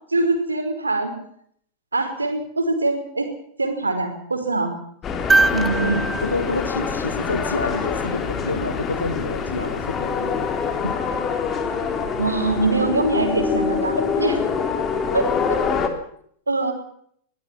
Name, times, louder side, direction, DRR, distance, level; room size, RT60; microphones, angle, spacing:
voice 1, 0.1-1.2 1.9-3.3 3.6-4.8 5.5-6.0 12.2-14.3 15.1-15.3 16.5-16.7, right 3 dB, 80° right, 5.1 m, -23 dB
sound 1, 5.0-15.9, left 5 dB, 25° left, 3.6 m, -25 dB
sound 2, 5.3-7.6 9.6-9.7, right 3 dB, 10° right, 1.2 m, -23 dB
voice 2, 5.8-10.5 10.8-11.0 14.0-14.4, left 3 dB, 80° left, 2.0 m, -28 dB
23.5 x 19.0 x 6.1 m
figure-of-eight pair, 90°, 0 cm